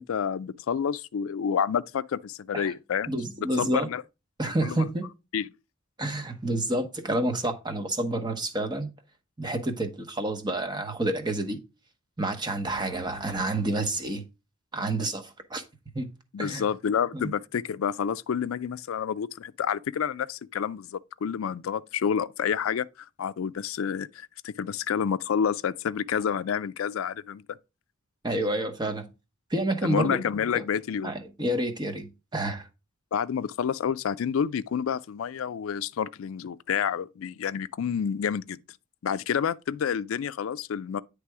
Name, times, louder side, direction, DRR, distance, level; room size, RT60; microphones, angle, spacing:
voice 1, 0.0-3.1 3.6-4.0 4.6-4.9 5.3-5.5 16.3-27.4 29.8-31.1 33.1-38.6 39.0-41.0, left 7 dB, 85° left, 0.4 m, -29 dB
voice 2, 3.1-3.9 4.4-5.1 6.0-8.9 9.4-11.6 12.2-14.2 14.7-15.6 15.9-16.1 16.4-16.6 17.1-17.3 28.2-29.1 29.5-30.2 30.5-30.6 31.0-32.7, right 1 dB, 20° right, 1.0 m, -29 dB
9.6 x 3.4 x 4.7 m
head